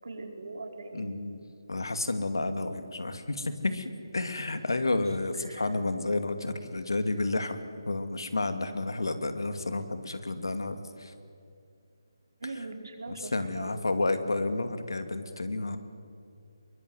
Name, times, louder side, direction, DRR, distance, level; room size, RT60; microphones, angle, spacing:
voice 1, 0.0-1.2 5.0-5.8 12.4-13.8, right 2 dB, 70° right, 3 dB, 4.9 m, -41 dB
voice 2, 0.9-1.4 1.7-7.6 7.9-11.1 13.1-15.8, left 2 dB, 75° left, 9 dB, 2.5 m, -31 dB
23.0 x 21.5 x 9.6 m, 2.5 s
figure-of-eight pair, 155°, 2 cm